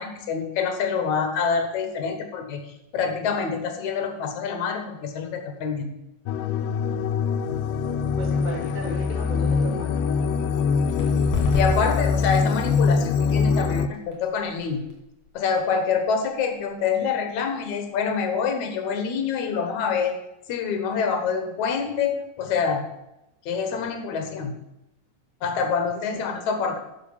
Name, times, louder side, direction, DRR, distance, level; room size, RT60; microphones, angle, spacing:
voice 1, 0.0-2.6 2.9-5.9 11.5-14.8 15.3-20.1 20.5-22.8 23.5-24.5 25.4-26.8, left 6 dB, 70° left, 6 dB, 2.5 m, -26 dB
sound 1, 6.3-13.9, left 5 dB, 90° left, 2.2 m, -23 dB
voice 2, 8.2-10.0 25.9-26.4, right 1 dB, 35° left, 0 dB, 0.7 m, -35 dB
sound 2, 10.8-18.2, left 4 dB, 50° left, 4.0 m, -37 dB
9.1 x 7.0 x 7.2 m, 0.87 s
omnidirectional pair, 3.6 m